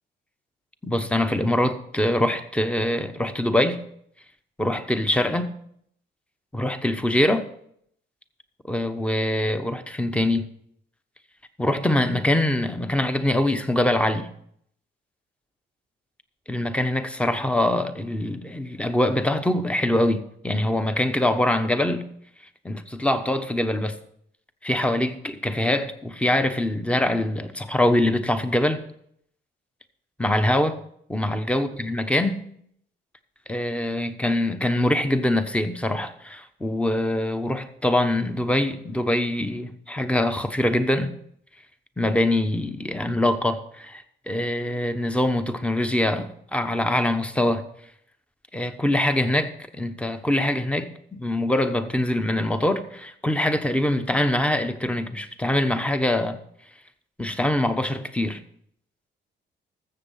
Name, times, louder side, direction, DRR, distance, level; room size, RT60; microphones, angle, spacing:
voice 1, 0.8-3.8 4.6-5.5 6.5-7.5 8.7-10.5 11.6-14.3 16.5-22.1 22.6-24.0 24.6-28.8 30.2-30.8 31.1-32.4 33.5-41.1 42.0-47.7 48.5-56.4 57.2-58.4, left 1 dB, 5° left, 1.1 m, -24 dB
13.5 x 7.4 x 5.7 m
cardioid pair, 90°, 20 cm